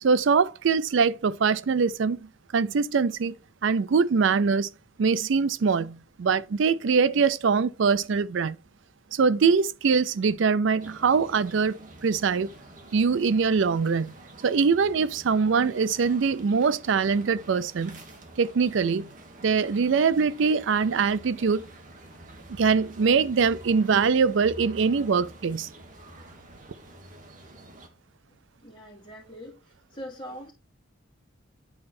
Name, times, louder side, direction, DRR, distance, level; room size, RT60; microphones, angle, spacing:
voice 1, 0.0-2.3 2.5-3.3 3.6-4.7 5.0-8.6 9.1-12.5 12.9-14.1 14.4-18.0 18.4-19.1 19.4-21.7 22.6-25.7, right 5 dB, 70° right, 0.4 m, -23 dB
sound 1, 10.8-27.9, right 1 dB, 40° right, 1.3 m, -48 dB
voice 2, 28.6-29.6 29.9-30.5, equal, 25° left, 2.7 m, -42 dB
8.7 x 4.3 x 4.2 m
head